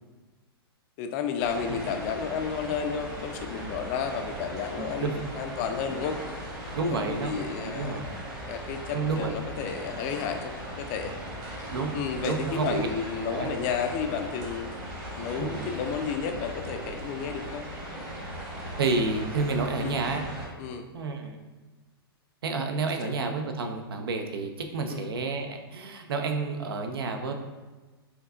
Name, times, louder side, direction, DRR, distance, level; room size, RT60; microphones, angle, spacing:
voice 1, 1.0-6.2 6.9-8.0 8.5-10.5 10.8-11.1 11.9-14.7 15.2-17.7 19.8-20.0 20.6-20.9 23.0-23.2 24.9-25.1, left 7 dB, 35° left, 6 dB, 0.3 m, -32 dB
sound 1, 1.4-20.5, equal, 25° right, 1.2 m, -38 dB
voice 2, 4.8-5.2 6.7-7.3 7.6-8.1 8.9-9.4 11.7-11.9 12.3-12.9 13.3-13.5 15.4-15.6 16.7-17.0 18.8-20.3 20.9-21.4 22.4-27.3, right 4 dB, 70° right, 5 dB, 0.5 m, -30 dB
4.4 x 2.8 x 2.4 m, 1.3 s
figure-of-eight pair, 110°, 13 cm